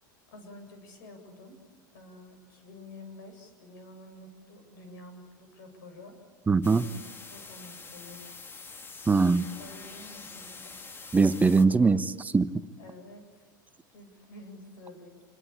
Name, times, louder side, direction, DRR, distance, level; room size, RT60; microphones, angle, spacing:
voice 1, 0.3-1.6 1.9-6.2 6.8-7.0 7.3-8.2 9.6-10.8 12.8-13.5 13.9-15.2, left 2 dB, 70° left, 6 dB, 7.8 m, -49 dB
voice 2, 6.5-6.9 9.1-9.5 11.1-12.5, right 4 dB, 15° right, 11 dB, 1.1 m, -22 dB
sound 1, 6.6-11.7, left 4 dB, 20° left, 1.8 m, -45 dB
28.5 x 22.0 x 8.6 m, 1.4 s
hypercardioid pair, 100°, 11 cm